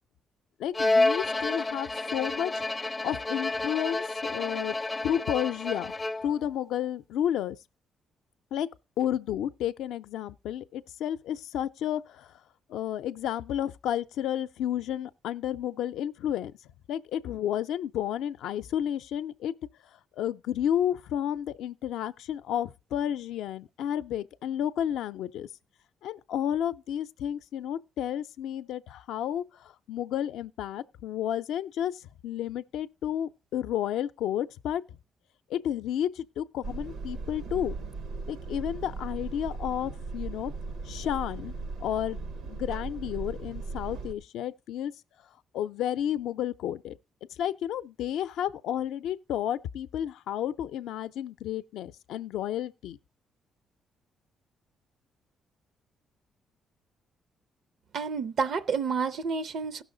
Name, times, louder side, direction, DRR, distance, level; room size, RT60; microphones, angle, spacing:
voice 1, 0.6-4.8 5.0-5.9 6.2-7.6 8.5-8.7 9.0-12.3 12.7-16.5 16.9-19.5 20.1-25.5 26.0-34.8 35.5-37.8 38.3-40.5 40.8-41.5 41.8-44.9 45.5-46.9 47.3-53.0, left 10 dB, 85° left, 0.5 m, -31 dB
Bowed string instrument, 0.7-6.5, left 2 dB, 20° left, 0.4 m, -29 dB
sound 1, 36.6-44.1, right 3 dB, 85° right, 1.0 m, -37 dB
voice 2, 57.9-59.8, right 5 dB, 65° right, 0.5 m, -29 dB
16.5 x 6.2 x 3.9 m
cardioid pair, 90°, 0 cm